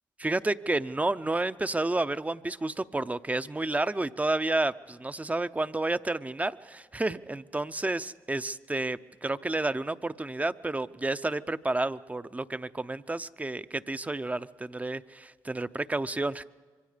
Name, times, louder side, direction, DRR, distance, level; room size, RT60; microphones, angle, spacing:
voice 1, 0.2-16.4, right 2 dB, 20° right, 13 dB, 0.7 m, -30 dB
26.0 x 24.0 x 5.1 m, 1.5 s
supercardioid pair, 60°, 8 cm